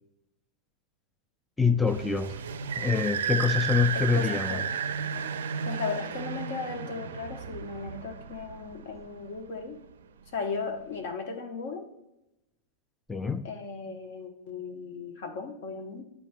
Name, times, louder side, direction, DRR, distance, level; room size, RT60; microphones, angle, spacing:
voice 1, 1.6-2.4 2.8-4.6 13.1-13.5, left 5 dB, 10° left, 0.4 m, -25 dB
Car - Start fast in underground parking, 1.9-9.2, right 7 dB, 75° right, 0.4 m, -33 dB
voice 2, 3.9-4.7 5.6-9.8 10.3-11.9 13.4-16.0, left 5 dB, 60° left, 1.1 m, -36 dB
10.5 x 4.5 x 2.2 m
hypercardioid pair, 95°, 0 cm